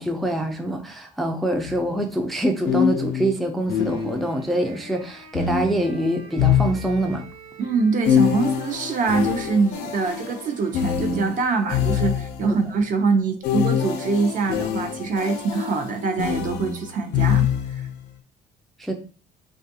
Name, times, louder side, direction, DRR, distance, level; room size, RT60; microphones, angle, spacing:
voice 1, 0.0-7.3 18.8-18.9, right 1 dB, ahead, 0.3 m, -25 dB
sound 1, 1.6-1.8 2.7-4.5 5.3-7.3 8.0-12.6 13.4-17.9, left 8 dB, 80° left, 0.5 m, -25 dB
Wind instrument woodwind instrument, 3.6-11.5, right 3 dB, 90° right, 0.8 m, -46 dB
voice 2, 7.6-17.5, right 4 dB, 50° right, 0.6 m, -24 dB
2.6 x 2.3 x 2.6 m
cardioid pair, 110°, 17 cm